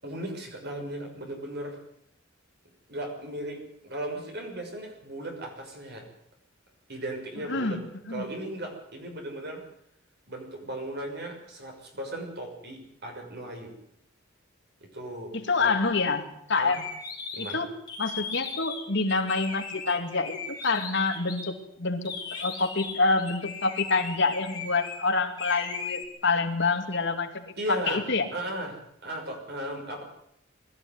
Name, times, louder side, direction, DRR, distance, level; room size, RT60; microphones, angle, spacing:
voice 1, 0.0-1.8 2.9-6.1 6.9-7.8 8.1-9.6 10.3-13.7 14.8-15.7 16.6-16.8 17.3-17.6 27.6-28.0 28.3-30.0, right 1 dB, 55° right, 2 dB, 6.3 m, -36 dB
voice 2, 7.5-7.8 8.1-8.2 15.3-16.8 17.4-17.7 18.0-22.1 22.4-27.5 27.9-28.2, left 3 dB, 60° left, 5 dB, 2.7 m, -27 dB
sound 1, 16.6-21.5 22.1-25.0 25.4-26.1, left 5 dB, 20° left, 4.7 m, -38 dB
21.5 x 14.0 x 9.7 m, 0.74 s
head